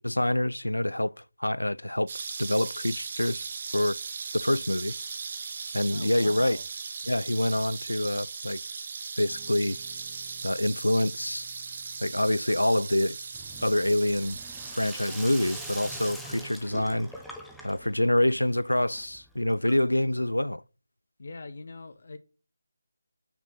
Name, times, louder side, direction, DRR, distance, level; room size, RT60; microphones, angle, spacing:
voice 1, 0.0-2.1 2.4-3.5 3.7-4.0 4.3-4.9 5.7-6.6 7.1-8.6 9.2-9.8 10.4-11.5 12.0-13.2 13.6-14.4 14.7-17.1 17.6-20.6, left 1 dB, 85° left, 0.4 m, -26 dB
sound 1, 2.1-16.1, right 5 dB, 35° right, 1.1 m, -38 dB
voice 2, 5.9-6.7 21.2-22.2, left 3 dB, 50° left, 0.9 m, -42 dB
Guitar, 9.2-18.5, right 3 dB, 20° right, 2.6 m, -59 dB
Sink (filling or washing), 13.3-20.1, equal, ahead, 0.8 m, -44 dB
6.5 x 5.9 x 5.9 m
figure-of-eight pair, 155°, 0 cm